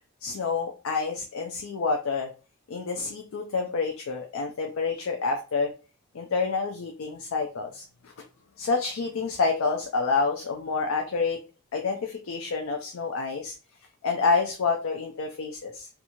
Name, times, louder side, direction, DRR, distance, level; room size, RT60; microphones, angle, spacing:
voice 1, 0.2-2.3 2.7-5.7 6.1-7.8 8.6-11.4 11.7-13.5 14.0-15.9, left 4 dB, 85° left, 2 dB, 0.4 m, -28 dB
2.6 x 2.4 x 2.9 m, 0.34 s
head